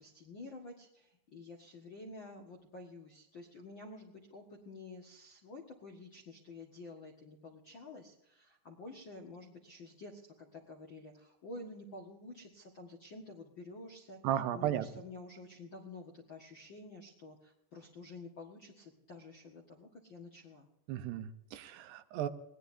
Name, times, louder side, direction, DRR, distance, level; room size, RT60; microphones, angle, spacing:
voice 1, 0.0-14.2 14.5-20.7, left 2 dB, 55° left, 0 dB, 1.3 m, -50 dB
voice 2, 14.2-14.9 20.9-22.3, right 11 dB, 80° right, 10 dB, 3.0 m, -35 dB
22.5 x 18.5 x 2.7 m, 0.85 s
omnidirectional pair, 4.8 m